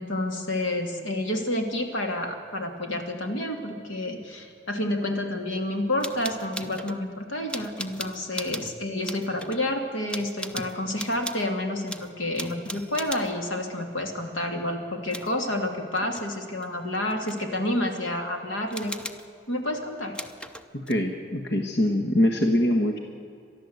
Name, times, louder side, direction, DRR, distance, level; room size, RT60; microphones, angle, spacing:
voice 1, 0.0-18.9 19.5-20.1, left 1 dB, 85° left, 4 dB, 2.7 m, -29 dB
sound 1, 6.0-7.0 7.5-8.8 9.0-9.6 10.1-11.5 11.9-13.4 15.1-15.4 15.9-16.3 16.6-17.5 18.7-19.3 20.1-20.9, equal, 5° left, 0.6 m, -38 dB
voice 2, 20.7-23.0, left 1 dB, 60° left, 3 dB, 1.4 m, -23 dB
29.5 x 12.5 x 8.0 m, 2.4 s
head